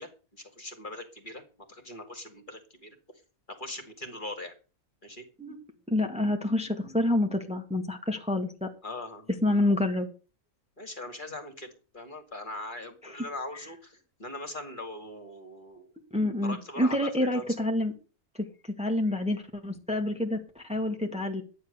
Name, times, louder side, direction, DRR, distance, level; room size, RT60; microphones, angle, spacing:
voice 1, 0.0-1.4 1.7-3.0 3.5-4.5 5.0-5.3 8.8-9.6 10.8-15.9 16.4-17.1 17.3-17.5, left 2 dB, 35° left, 6 dB, 2.2 m, -41 dB
voice 2, 5.9-8.7 9.4-10.1 13.0-13.1 16.1-17.9 18.8-21.4, left 1 dB, 5° right, 3 dB, 1.8 m, -28 dB
12.0 x 9.6 x 6.6 m, 0.36 s
omnidirectional pair, 1.5 m